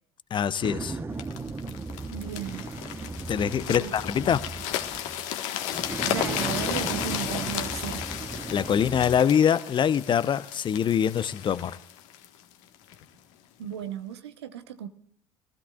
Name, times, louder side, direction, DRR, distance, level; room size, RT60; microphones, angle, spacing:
voice 1, 0.3-1.0 3.3-4.4 8.5-11.7, left 8 dB, 35° left, 0.8 m, -24 dB
sound 1, 0.6-5.3 5.7-9.2, right 3 dB, 15° right, 1.0 m, -36 dB
sound 2, 1.2-13.0 13.6-13.8, left 11 dB, 55° left, 1.4 m, -34 dB
voice 2, 2.1-2.6 3.7-3.9 6.0-8.0 13.6-14.9, right 9 dB, 70° right, 1.0 m, -35 dB
24.5 x 15.5 x 2.4 m
figure-of-eight pair, 60°, 14 cm